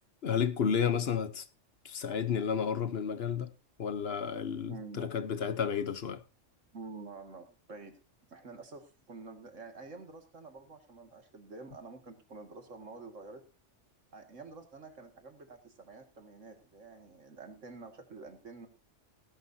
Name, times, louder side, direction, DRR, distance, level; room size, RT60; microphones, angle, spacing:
voice 1, 0.2-1.4 1.8-3.5 3.8-6.2, left 7 dB, 55° left, 1.1 m, -31 dB
voice 2, 4.7-5.1 6.7-8.0 8.3-13.5 14.1-18.7, right 3 dB, 85° right, 2.4 m, -48 dB
18.5 x 11.5 x 2.7 m
omnidirectional pair, 1.3 m